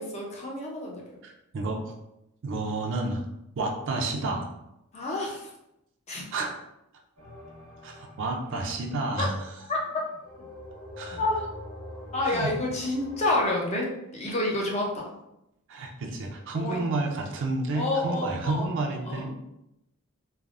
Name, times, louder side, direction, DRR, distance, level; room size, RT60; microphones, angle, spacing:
voice 1, 0.0-1.0 4.9-5.5 6.1-6.2 9.2-9.3 9.7-10.0 11.2-11.5 12.1-15.1 16.5-16.8 17.7-18.7 19.0-19.3, left 2 dB, 30° left, -2 dB, 0.5 m, -29 dB
voice 2, 1.2-1.9 2.4-3.2 3.6-4.5 6.3-6.5 7.8-9.3 11.0-11.2 12.3-12.5 15.7-19.3, right 2 dB, 55° right, 2 dB, 0.4 m, -30 dB
sound 1, 7.2-9.6 10.2-13.5, left 1 dB, 90° right, 1.0 m, -44 dB
3.2 x 2.0 x 2.4 m, 0.85 s
head